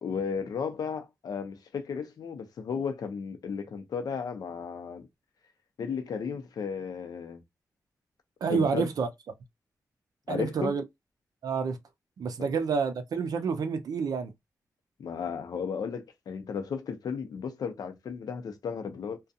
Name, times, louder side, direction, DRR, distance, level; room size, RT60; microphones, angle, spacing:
voice 1, 0.0-5.1 5.8-7.4 8.5-8.9 10.3-10.7 12.4-12.5 15.0-19.2, left 6 dB, 75° left, 0.6 m, -34 dB
voice 2, 8.4-9.1 10.3-10.8 11.4-11.8 12.2-14.3, right 5 dB, 70° right, 0.4 m, -28 dB
2.4 x 2.2 x 2.6 m
wide cardioid pair, 130°, 7 cm